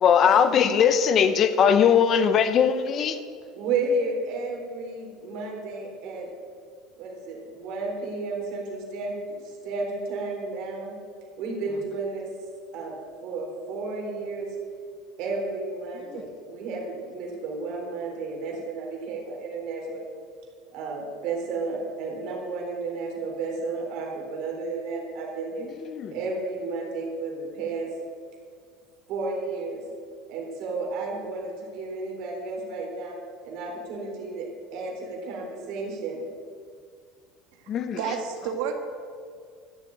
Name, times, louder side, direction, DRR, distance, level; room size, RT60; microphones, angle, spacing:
voice 1, 0.0-3.2 11.7-11.8 16.1-16.2 25.8-26.2 37.7-38.2, left 7 dB, 35° left, 0.8 m, -21 dB
voice 2, 3.6-6.3 7.0-10.9 11.4-12.3 12.7-12.9 13.2-14.5 15.2-20.1 20.7-25.7 26.1-27.9 29.1-29.8 30.3-33.2 33.4-36.2, right 3 dB, 55° right, 3.8 m, -32 dB
voice 3, 38.0-38.8, right 7 dB, 75° right, 1.7 m, -30 dB
13.0 x 7.5 x 8.8 m
cardioid pair, 150°, 0 cm